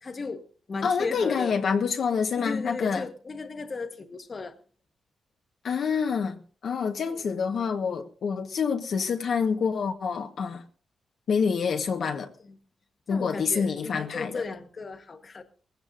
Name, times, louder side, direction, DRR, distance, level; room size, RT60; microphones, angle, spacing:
voice 1, 0.0-1.5 2.4-4.6 7.1-7.3 12.4-12.5 13.1-15.4, left 4 dB, 30° left, 1.4 m, -35 dB
voice 2, 0.8-3.0 5.6-6.4 6.6-10.6 11.3-12.3 13.1-14.4, left 6 dB, 60° left, 1.2 m, -27 dB
21.0 x 16.0 x 2.5 m
wide cardioid pair, 150°, 0 cm